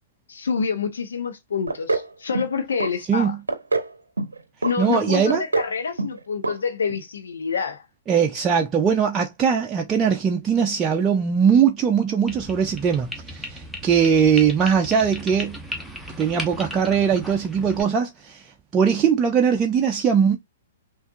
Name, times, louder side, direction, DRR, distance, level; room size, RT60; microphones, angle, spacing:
voice 1, 0.3-3.3 4.6-7.8, left 6 dB, 65° left, 0.8 m, -27 dB
sound 1, 1.7-2.1 2.3-2.9 3.2-3.9 4.2-4.7 5.1-5.7 6.0-6.2 6.4-6.6 6.9-7.0, right 3 dB, 80° right, 0.6 m, -25 dB
voice 2, 4.8-5.4 8.1-15.6 16.2-18.5 18.7-20.4, right 7 dB, 20° right, 0.6 m, -20 dB
sound 2, 12.3-17.8, equal, ahead, 1.0 m, -36 dB
5.8 x 2.6 x 2.5 m
figure-of-eight pair, 110°, 0 cm